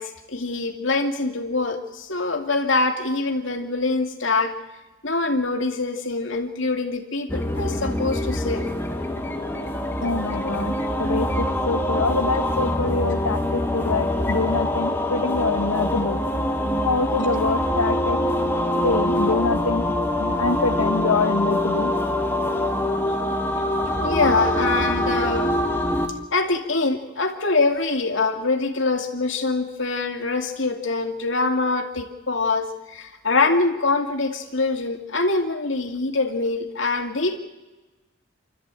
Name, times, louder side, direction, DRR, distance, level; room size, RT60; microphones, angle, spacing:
voice 1, 0.0-4.5 5.0-8.6 20.2-20.4 24.0-25.5 26.3-37.4, left 3 dB, 60° left, 5 dB, 2.5 m, -24 dB
sound 1, 7.3-26.1, left 1 dB, 10° left, 1.7 m, -24 dB
voice 2, 10.0-10.7 11.0-16.2 16.9-18.2 18.8-19.9 20.4-21.9, left 3 dB, 85° left, 7 dB, 0.9 m, -25 dB
26.5 x 13.5 x 9.1 m, 1.1 s
head